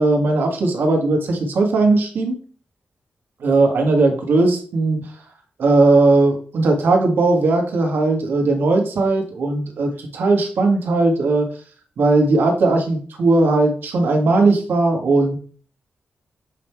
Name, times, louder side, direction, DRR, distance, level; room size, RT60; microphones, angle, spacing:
voice 1, 0.0-2.4 3.4-5.1 5.6-11.5 12.0-15.4, right 2 dB, 85° right, 2 dB, 1.7 m, -18 dB
7.4 x 3.7 x 4.5 m, 0.43 s
wide cardioid pair, 130°, 3 cm